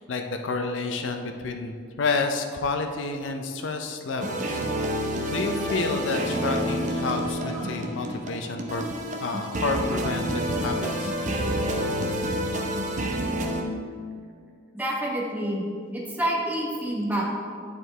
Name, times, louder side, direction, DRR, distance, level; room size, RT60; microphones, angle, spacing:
voice 1, 0.0-4.5 5.3-11.1, left 3 dB, 75° left, 5 dB, 0.5 m, -29 dB
sound 1, 4.2-13.6, equal, 40° right, 0.6 m, -28 dB
voice 2, 14.7-15.6 15.9-17.3, right 1 dB, 10° right, -3 dB, 1.0 m, -28 dB
9.9 x 4.5 x 3.3 m, 2.1 s
head